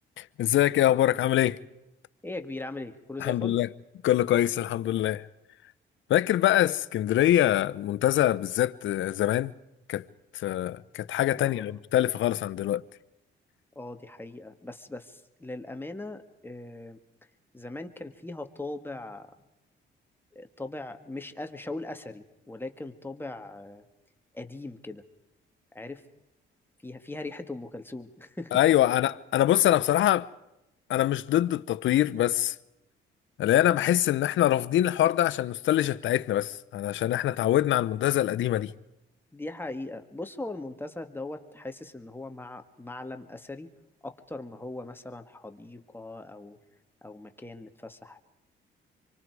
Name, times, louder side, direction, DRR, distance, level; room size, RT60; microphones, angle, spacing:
voice 1, 0.2-1.6 3.2-3.7 4.0-5.2 6.1-9.5 9.9-10.0 10.3-12.8 28.5-30.3 30.9-32.5 33.4-38.7, left 13 dB, 75° left, 0.8 m, -24 dB
voice 2, 2.2-3.6 11.4-11.8 13.8-17.0 17.5-19.3 20.3-23.9 24.3-25.0 25.7-26.0 26.8-28.6 39.3-43.7 44.0-46.6 47.0-48.2, left 2 dB, 10° left, 1.9 m, -39 dB
27.5 x 24.0 x 4.8 m
cardioid pair, 90°, 20 cm